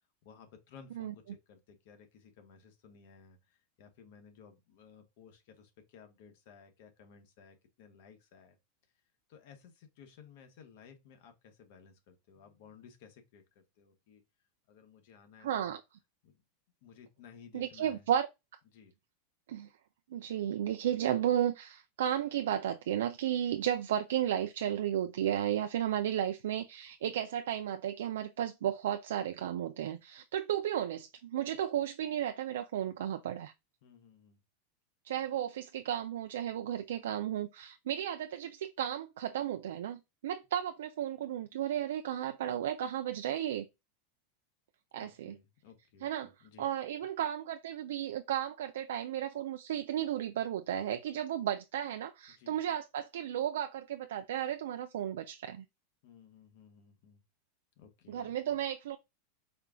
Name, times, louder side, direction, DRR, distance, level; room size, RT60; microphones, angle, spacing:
voice 1, 0.2-8.6 9.3-14.2 14.7-15.7 16.2-16.3 16.8-18.1 18.7-18.9 33.8-34.4 45.0-46.7 52.4-52.6 56.0-57.2 57.8-58.6, left 6 dB, 60° left, 1.1 m, -57 dB
voice 2, 15.4-15.8 17.5-18.3 19.5-19.7 20.1-33.5 35.0-43.7 44.9-45.4 46.0-46.3 46.6-55.6 58.1-59.0, right 10 dB, 85° right, 0.4 m, -34 dB
4.3 x 2.3 x 3.6 m
supercardioid pair, 140°, 0 cm